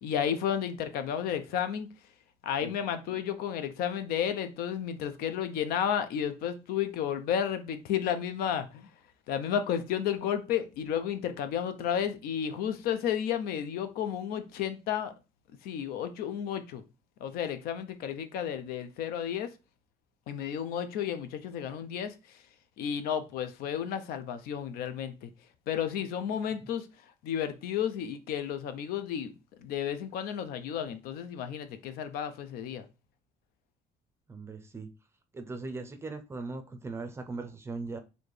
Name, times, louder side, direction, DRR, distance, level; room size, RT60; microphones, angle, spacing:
voice 1, 0.0-1.9 2.4-8.9 9.3-15.1 15.6-16.8 17.2-19.5 20.3-22.1 22.8-25.3 25.7-26.9 27.2-29.3 29.6-32.8, left 9 dB, 85° left, 0.5 m, -32 dB
voice 2, 34.3-34.9 35.3-38.0, right 3 dB, 15° right, 0.5 m, -39 dB
4.2 x 2.8 x 3.2 m
cardioid pair, 150°, 15 cm